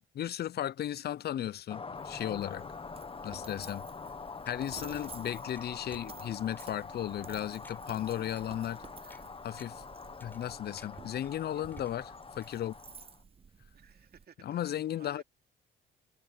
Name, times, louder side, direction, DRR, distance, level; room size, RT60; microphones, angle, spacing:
voice 1, 0.1-2.6 3.2-3.9 4.5-8.8 9.4-9.8 10.2-12.7 14.4-15.2, left 11 dB, 55° left, 0.5 m, -35 dB
sound 1, 1.7-13.2, left 4 dB, 25° left, 1.1 m, -45 dB
Coin (dropping), 2.0-14.3, right 5 dB, 30° right, 0.7 m, -53 dB
sound 2, 4.5-4.6 5.0-5.1 5.6-6.2 6.6-6.7 7.2-7.3 7.6-7.8 8.4-8.5 9.1-9.2 9.6-9.8 10.2-10.5 10.8-11.3 11.7-12.2 12.4-12.5, left 1 dB, 10° left, 5.4 m, -57 dB
voice 2, 11.3-11.6 13.7-15.2, right 7 dB, 50° right, 2.7 m, -58 dB
cardioid pair, 90°, 20 cm